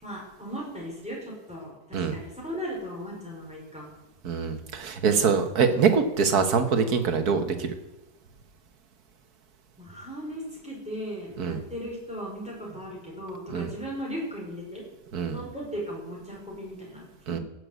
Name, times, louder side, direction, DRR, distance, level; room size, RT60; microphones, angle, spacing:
voice 1, 0.0-3.9 9.8-14.8 15.2-17.4, equal, 5° right, -4 dB, 5.1 m, -37 dB
voice 2, 4.2-7.7 11.4-11.6 13.5-13.7 15.1-15.4 17.3-17.4, right 5 dB, 60° right, 7 dB, 1.7 m, -24 dB
15.5 x 6.6 x 8.2 m, 0.99 s
omnidirectional pair, 1.8 m